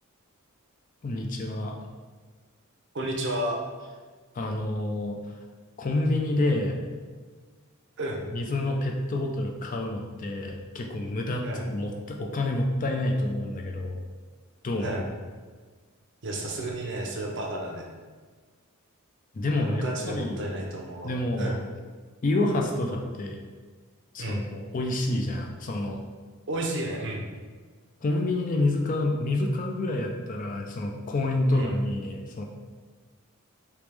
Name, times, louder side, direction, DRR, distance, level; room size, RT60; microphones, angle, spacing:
voice 1, 1.0-1.7 4.3-5.3 5.8-6.8 8.3-14.0 14.6-15.0 19.3-20.5 21.0-21.6 22.2-23.4 24.1-26.0 28.0-32.4, left 2 dB, 35° left, 1 dB, 0.4 m, -28 dB
voice 2, 2.9-3.6 8.0-8.3 11.4-11.7 14.8-15.1 16.2-17.9 19.6-21.6 24.2-24.4 26.5-27.3 31.5-31.7, right 1 dB, 55° right, 0 dB, 0.6 m, -32 dB
3.3 x 3.0 x 3.3 m, 1.5 s
head